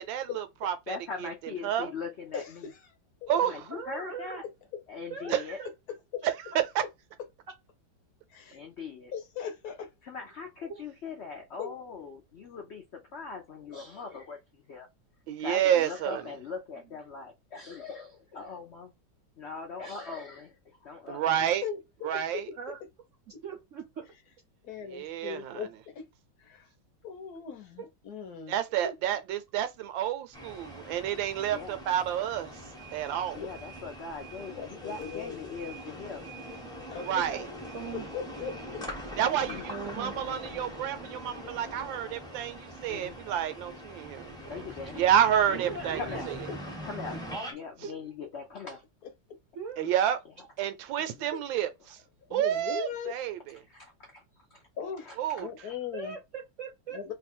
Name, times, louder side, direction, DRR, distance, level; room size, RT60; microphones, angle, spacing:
voice 1, 0.0-1.0 1.6-1.9 3.3-3.5 5.3-5.4 6.2-6.3 6.7-6.8 15.3-16.2 21.1-21.6 22.0-22.4 24.9-25.6 28.5-32.5 32.9-33.4 37.1-37.4 39.2-44.6 45.0-46.0 49.8-50.2 50.6-51.7 52.3-53.4 55.2-55.5, right 10 dB, 80° right, 1.4 m, -29 dB
voice 2, 0.9-2.7 3.4-4.4 4.9-5.6 8.5-9.1 10.0-14.9 15.4-18.9 19.4-21.4 31.5-31.8 33.3-36.3 39.4-39.6 42.9-43.2 44.4-45.6 45.9-46.3 46.8-47.2 47.5-48.8 50.4-50.5 51.0-51.3 53.7-54.2 54.5-54.6 55.1-55.5, left 5 dB, 85° left, 0.5 m, -41 dB
voice 3, 2.3-2.8 3.2-3.4 4.7-4.8 6.1-6.2 8.3-8.6 9.1-9.9 11.6-11.7 21.6-22.6 23.3-23.4 24.6-26.0 26.4-26.7 27.0-28.5 28.8-28.9 33.3-33.5 34.6-35.5 36.9-37.6 37.9-38.8 46.5-46.6 47.1-47.2 52.3-53.2 54.8-55.1 55.4-56.2 56.9-57.1, left 7 dB, 60° left, 1.1 m, -39 dB
voice 4, 3.7-4.4 5.1-5.7 10.7-10.8 22.6-22.8 23.4-24.1 27.8-27.9 37.7-38.1 39.7-40.1 45.4-46.3 47.8-48.1 49.5-50.0 51.3-51.4 55.9-57.1, right 5 dB, 60° right, 0.8 m, -40 dB
sound 1, 30.3-47.5, equal, 5° left, 0.6 m, -42 dB
3.2 x 2.3 x 4.2 m
omnidirectional pair, 2.1 m